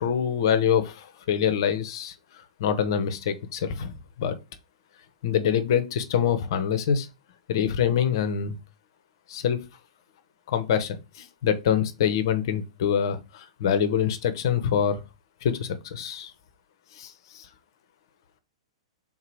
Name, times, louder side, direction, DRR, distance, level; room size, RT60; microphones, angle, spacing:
voice 1, 0.0-2.1 2.6-4.4 5.2-7.1 7.5-8.5 9.3-9.6 10.5-15.0 15.4-16.3 17.0-17.5, left 8 dB, 50° left, 0.6 m, -25 dB
3.6 x 2.9 x 4.7 m
figure-of-eight pair, 105°, 3 cm